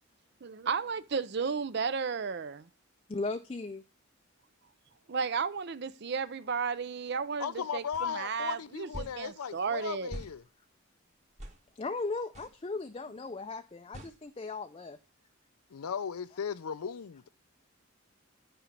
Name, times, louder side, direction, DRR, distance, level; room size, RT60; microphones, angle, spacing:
voice 1, 0.4-2.7 5.1-10.1, right 5 dB, 50° right, 0.5 m, -33 dB
voice 2, 3.1-3.8 11.8-15.0, left 3 dB, 25° left, 0.4 m, -37 dB
voice 3, 7.4-10.4 15.7-17.3, left 7 dB, 90° left, 0.5 m, -36 dB
sound 1, 7.9-8.1 8.9-9.2 10.1-10.3 11.4-11.6 12.3-12.5 13.9-14.2, equal, 35° right, 1.6 m, -42 dB
10.0 x 5.1 x 5.9 m
head